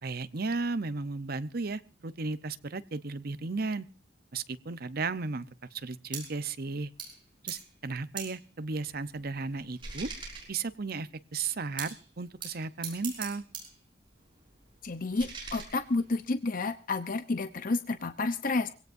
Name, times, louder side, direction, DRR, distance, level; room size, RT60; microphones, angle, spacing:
voice 1, 0.0-3.9 4.3-6.9 7.4-10.1 10.5-13.4, right 3 dB, 55° right, 14 dB, 0.8 m, -35 dB
sound 1, 6.1-6.4 7.0-7.2 7.5-7.7 8.2-8.4 8.9-10.9 11.8-12.1 12.4-13.8 14.1-16.3, right 5 dB, 25° right, 6.2 m, -43 dB
voice 2, 14.8-18.7, left 3 dB, 45° left, 10 dB, 0.8 m, -30 dB
24.0 x 17.5 x 2.7 m, 0.33 s
head